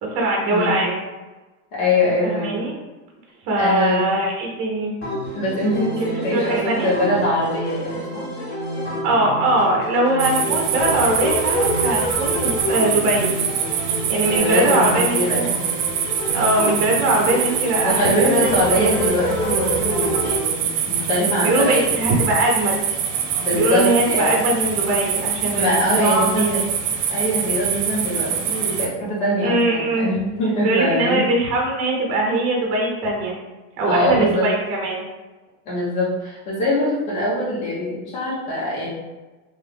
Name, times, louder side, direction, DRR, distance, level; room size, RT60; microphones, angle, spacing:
voice 1, 0.0-1.0 2.2-2.8 3.4-4.9 6.0-6.9 9.0-13.3 14.1-15.4 16.3-19.0 21.4-22.8 23.5-26.6 29.4-30.1 30.6-33.4 33.8-35.0, right 1 dB, 30° right, -1 dB, 0.7 m, -21 dB
voice 2, 1.7-2.6 3.6-4.0 5.3-8.3 14.3-15.7 17.8-21.9 23.4-24.4 25.5-26.6 27.1-31.3 33.8-34.5 35.6-38.9, left 1 dB, 70° left, -7 dB, 1.5 m, -23 dB
sound 1, 5.0-20.4, equal, 25° left, 0.9 m, -28 dB
sound 2, 10.2-28.9, right 7 dB, 65° right, 0.7 m, -24 dB
2.9 x 2.3 x 3.4 m, 1.2 s
supercardioid pair, 145°, 46 cm